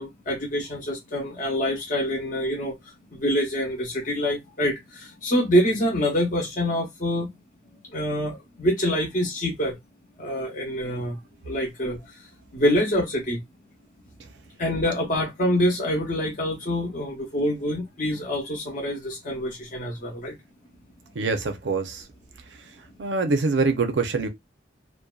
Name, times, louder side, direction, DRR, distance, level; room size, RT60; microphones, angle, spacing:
voice 1, 0.0-7.3 7.9-9.8 10.2-11.2 11.4-13.4 14.6-20.4, equal, 45° left, 0.6 m, -26 dB
voice 2, 21.1-22.0 23.0-24.3, right 4 dB, 80° right, 0.5 m, -24 dB
2.5 x 2.1 x 2.3 m
head